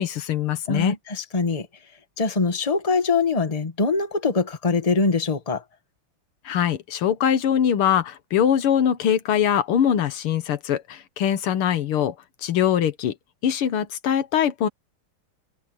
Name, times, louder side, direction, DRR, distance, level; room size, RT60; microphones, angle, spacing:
voice 1, 0.0-1.0 6.5-12.1 12.4-13.2 13.4-14.7, left 9 dB, 85° left, 2.1 m, -22 dB
voice 2, 0.7-1.7 2.2-5.6, left 4 dB, 20° left, 1.5 m, -23 dB
omnidirectional pair, 2.3 m